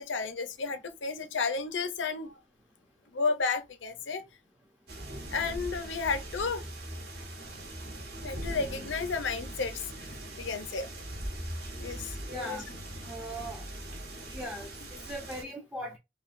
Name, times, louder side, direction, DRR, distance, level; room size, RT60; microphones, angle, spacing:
voice 1, 0.0-2.3 3.1-4.2 5.3-6.6 8.2-9.8 10.4-10.9 11.7-12.6, left 4 dB, 80° left, 0.6 m, -32 dB
sound 1, 4.9-15.4, right 1 dB, 55° right, 1.6 m, -41 dB
voice 2, 12.3-12.7 13.0-13.6 14.3-16.0, equal, 10° right, 0.6 m, -39 dB
5.7 x 2.2 x 2.5 m
head